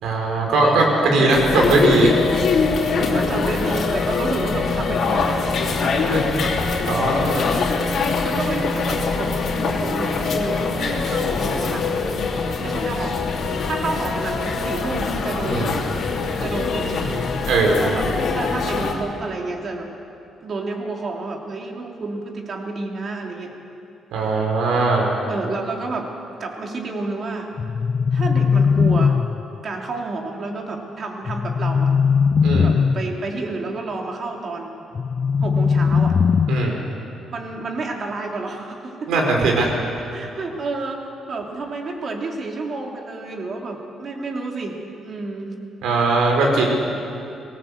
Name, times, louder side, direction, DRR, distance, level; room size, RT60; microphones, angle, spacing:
voice 1, 0.0-2.1 6.1-6.2 6.8-7.3 15.4-15.7 17.5-17.8 24.1-25.1 32.4-32.7 36.5-36.7 39.1-39.7 45.8-46.7, right 3 dB, 85° right, 0 dB, 4.7 m, -19 dB
voice 2, 0.6-2.2 2.9-6.2 6.4-6.6 6.9-7.7 8.0-9.3 9.6-12.2 12.6-13.4 13.6-15.8 16.4-17.3 17.6-18.1 18.3-19.9 20.4-23.5 25.3-26.1 26.4-27.5 28.1-29.2 29.6-31.9 32.6-34.8 35.4-36.1 37.3-39.1 40.1-41.0 41.3-45.5, right 3 dB, 50° right, 1 dB, 3.2 m, -30 dB
sound 1, 1.3-18.9, left 4 dB, 65° left, 2.9 m, -23 dB
sound 2, 27.6-29.6 31.3-33.1 34.9-36.9, left 6 dB, 45° left, 0.4 m, -19 dB
19.5 x 17.5 x 8.2 m, 2.7 s
cardioid pair, 90°, 0 cm